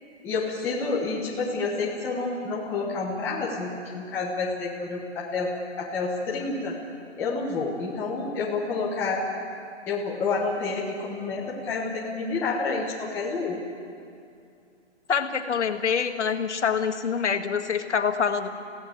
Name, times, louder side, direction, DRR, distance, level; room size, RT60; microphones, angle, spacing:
voice 1, 0.2-6.8 7.2-9.3 9.9-13.6, left 3 dB, 5° left, -5 dB, 1.3 m, -29 dB
voice 2, 15.1-18.5, left 6 dB, 70° left, 6 dB, 2.0 m, -25 dB
29.5 x 16.5 x 7.9 m, 2.4 s
hypercardioid pair, 175°, 36 cm